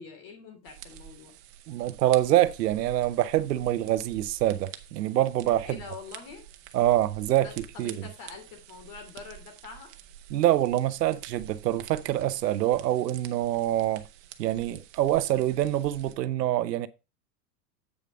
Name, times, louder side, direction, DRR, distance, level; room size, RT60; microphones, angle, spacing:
voice 1, 0.0-1.3 5.6-6.5 7.4-9.9, left 5 dB, 40° left, 3.2 m, -45 dB
sound 1, 0.7-16.2, right 10 dB, 45° right, 1.1 m, -48 dB
voice 2, 1.7-5.8 6.7-7.5 7.8-8.0 10.3-14.1 14.4-16.9, right 13 dB, 80° right, 0.8 m, -25 dB
8.3 x 5.1 x 4.7 m
hypercardioid pair, 120°, 48 cm